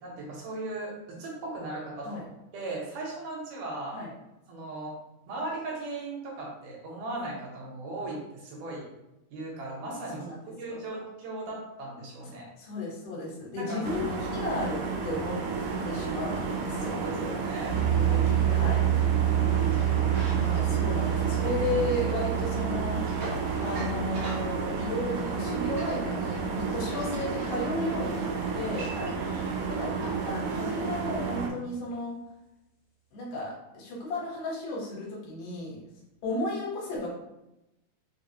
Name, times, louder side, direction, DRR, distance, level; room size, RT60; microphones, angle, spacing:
voice 1, 0.0-2.2 2.5-4.0 4.5-4.9 5.3-8.9 9.3-12.5 13.6-14.0 16.9-17.8 28.9-29.1, right 2 dB, 75° right, -3 dB, 2.4 m, -37 dB
voice 2, 12.6-15.3 15.8-16.9 17.9-18.9 20.3-23.0 23.6-28.9 29.7-29.9 30.3-32.2 33.1-35.8 36.2-37.1, left 2 dB, 75° left, -4 dB, 2.6 m, -34 dB
sound 1, 13.8-31.5, right 4 dB, 90° right, 1.7 m, -32 dB
sound 2, 17.7-27.2, right 11 dB, 45° left, 1.2 m, -28 dB
sound 3, 19.5-30.3, right 1 dB, 55° right, 1.5 m, -44 dB
5.5 x 2.2 x 2.7 m, 0.92 s
omnidirectional pair, 3.9 m